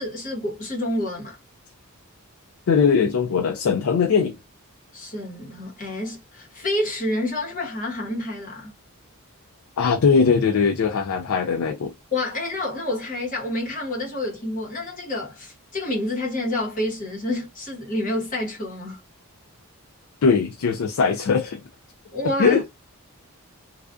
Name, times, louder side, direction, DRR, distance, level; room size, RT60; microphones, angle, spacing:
voice 1, 0.0-1.4 4.9-8.7 12.1-19.0 22.1-22.7, left 1 dB, 35° left, 1.0 m, -28 dB
voice 2, 2.7-4.4 9.8-11.9 20.2-21.6 22.4-22.7, left 5 dB, 70° left, 0.4 m, -20 dB
2.3 x 2.3 x 2.3 m
head